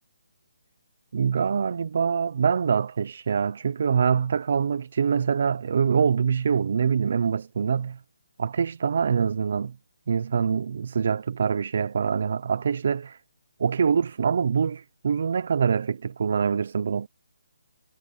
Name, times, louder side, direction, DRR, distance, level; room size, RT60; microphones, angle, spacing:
voice 1, 1.1-8.0 8.4-9.8 10.1-13.2 13.6-17.1, right 6 dB, 55° right, 0.8 m, -24 dB
hypercardioid pair, 160°, 0 cm